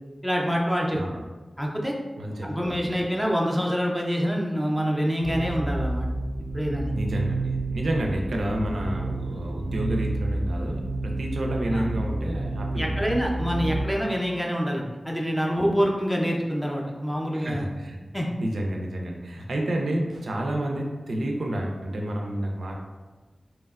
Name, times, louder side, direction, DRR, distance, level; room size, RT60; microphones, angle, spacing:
voice 1, 0.2-1.0 1.6-1.9 2.4-6.1 6.5-6.9 11.7-11.8 12.8-17.7 18.1-18.3, equal, ahead, -2 dB, 0.5 m, -26 dB
voice 2, 0.9-1.3 2.2-2.9 6.9-13.5 17.3-18.0 18.4-22.7, right 1 dB, 90° right, 0 dB, 0.3 m, -30 dB
sound 1, 5.2-13.9, right 2 dB, 60° left, 1.0 m, -29 dB
2.8 x 2.1 x 2.3 m, 1.3 s
wide cardioid pair, 55°, 0 cm